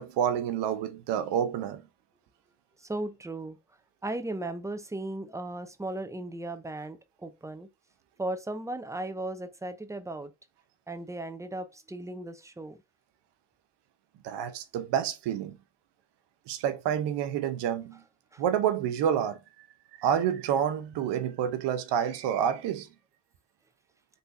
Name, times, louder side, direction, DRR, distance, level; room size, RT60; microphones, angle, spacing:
voice 1, 0.0-1.8 14.2-15.6 16.5-18.0 18.4-19.7 20.0-22.9, right 9 dB, 65° right, 0.7 m, -28 dB
voice 2, 2.8-3.6 4.0-7.7 8.2-10.3 10.9-12.8 18.3-18.4, right 2 dB, 5° right, 0.5 m, -36 dB
3.9 x 2.6 x 2.6 m
hypercardioid pair, 60°, 45 cm